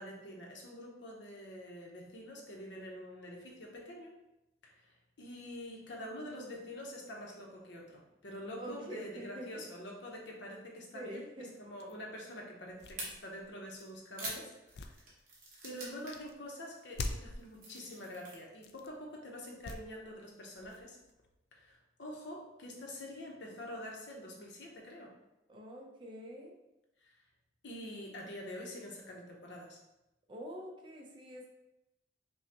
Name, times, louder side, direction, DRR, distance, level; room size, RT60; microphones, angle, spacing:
voice 1, 0.0-4.1 4.6-11.2 11.6-15.0 15.6-21.0 21.5-25.1 27.0-27.1 27.6-29.8, equal, 85° left, 0 dB, 0.9 m, -46 dB
voice 2, 8.6-9.7 10.9-11.5 25.5-26.5 30.3-31.5, equal, 25° right, -1 dB, 0.6 m, -45 dB
sound 1, 11.8-11.9 12.6-14.0 14.5-15.6 16.1-16.3 16.9-17.5 18.5-19.0 19.6-20.1 20.5-21.7, left 2 dB, 60° left, 0.3 m, -44 dB
sound 2, 13.0-13.1 13.8-16.3 16.5-16.8 17.2-18.4, right 2 dB, 50° right, 1.1 m, -45 dB
5.4 x 2.3 x 2.9 m, 0.93 s
head